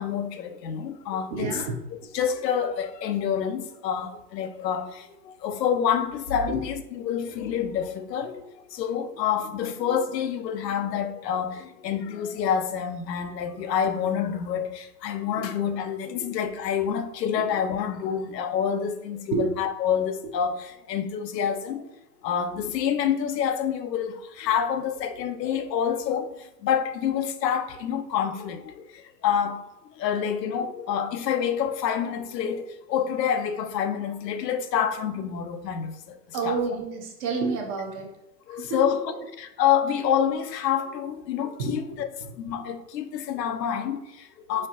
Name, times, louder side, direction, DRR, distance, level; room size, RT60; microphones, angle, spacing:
voice 1, 0.0-21.9 22.2-29.6 30.0-36.6 38.5-39.1 39.4-42.1 42.4-44.7, left 8 dB, 85° left, 0.7 m, -27 dB
voice 2, 1.3-1.8 6.5-6.6 15.4-15.5 16.1-16.2 19.3-19.4 36.3-38.1 38.6-38.8 39.1-39.2 41.6-41.7, right 5 dB, 25° right, 0.5 m, -29 dB
4.6 x 4.3 x 2.5 m
hypercardioid pair, 140°, 49 cm